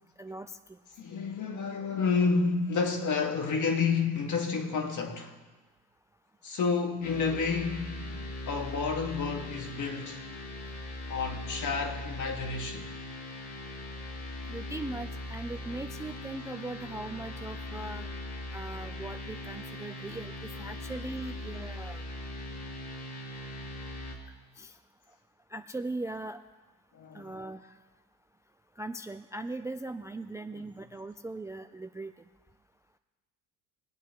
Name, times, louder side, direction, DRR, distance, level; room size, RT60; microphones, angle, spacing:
voice 1, 0.2-0.8 14.5-18.1 18.5-22.0 24.6-24.7 25.5-26.4 27.1-27.7 28.8-32.1, right 2 dB, 10° right, 0.3 m, -39 dB
voice 2, 1.0-5.4 6.4-8.0 8.5-10.2 11.1-12.9 26.9-27.3 30.5-30.6, left 5 dB, 50° left, 1.8 m, -30 dB
sound 1, 7.0-24.1, left 1 dB, 70° left, 2.7 m, -40 dB
22.0 x 8.3 x 3.0 m
supercardioid pair, 85°, 37 cm